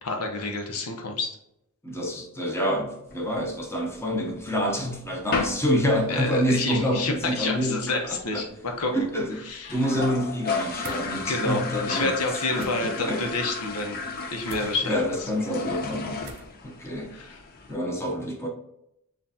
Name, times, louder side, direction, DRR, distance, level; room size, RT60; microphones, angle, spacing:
voice 1, 0.0-1.4 6.1-9.1 9.5-9.8 11.3-14.0 14.3-15.0 17.1-17.4, left 2 dB, 90° left, 0.8 m, -29 dB
voice 2, 1.8-8.4 8.9-12.2 12.5-13.2 14.5-16.3 16.6-17.1 17.7-18.5, equal, 10° left, 0.8 m, -27 dB
sound 1, 3.1-4.1 4.5-4.6 4.9-5.0 5.3-5.8 6.0-6.1 6.4-6.5 6.8-7.2 7.6-7.7 7.8-7.9 8.2-8.3 8.8-8.9 9.2-9.3 9.5-17.8, left 4 dB, 45° left, 0.6 m, -33 dB
sound 2, 10.8-11.0 12.5-12.7 14.5-14.7 16.2-16.5, right 4 dB, 45° right, 0.7 m, -42 dB
7.3 x 2.5 x 2.8 m
head